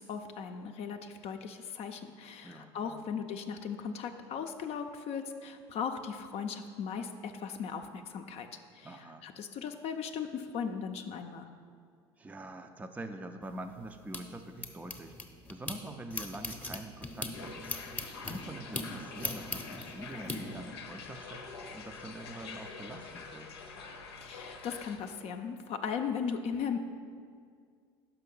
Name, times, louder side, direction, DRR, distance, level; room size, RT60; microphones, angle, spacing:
voice 1, 0.0-8.5 8.7-11.5 24.2-26.8, left 6 dB, 50° left, 6 dB, 0.5 m, -37 dB
voice 2, 2.4-3.1 8.8-9.3 12.2-15.2 15.5-17.7 18.2-21.5 21.7-23.5, right 2 dB, 10° right, 6 dB, 0.4 m, -45 dB
sound 1, 13.4-15.8 16.1-20.4, left 2 dB, 10° left, 0.8 m, -40 dB
sound 2, 17.3-25.0, left 4 dB, 85° left, 0.7 m, -46 dB
5.6 x 5.6 x 5.4 m, 2.1 s
hypercardioid pair, 85°, 13 cm